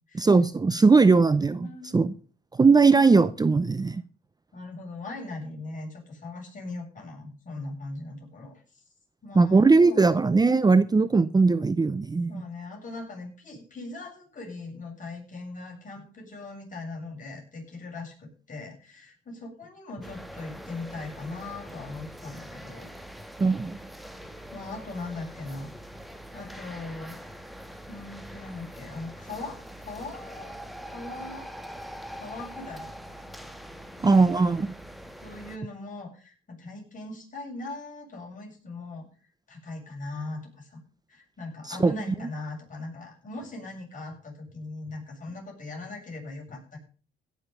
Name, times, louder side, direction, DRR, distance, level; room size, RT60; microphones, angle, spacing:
voice 1, 0.1-2.1 2.5-4.0 9.3-12.4 23.4-23.8 34.0-34.7 41.7-41.9, right 4 dB, 20° right, 15 dB, 0.6 m, -20 dB
voice 2, 1.6-1.9 4.5-8.8 9.2-10.1 12.3-22.9 24.5-25.7 26.3-27.2 27.9-30.5 30.9-31.5 32.1-33.5 35.2-39.1 39.5-40.8 41.1-46.8, left 2 dB, 40° left, -1 dB, 7.8 m, -40 dB
sound 1, 20.0-35.6, equal, ahead, 1.6 m, -43 dB
16.5 x 6.5 x 7.0 m, 0.39 s
cardioid pair, 90°, 20 cm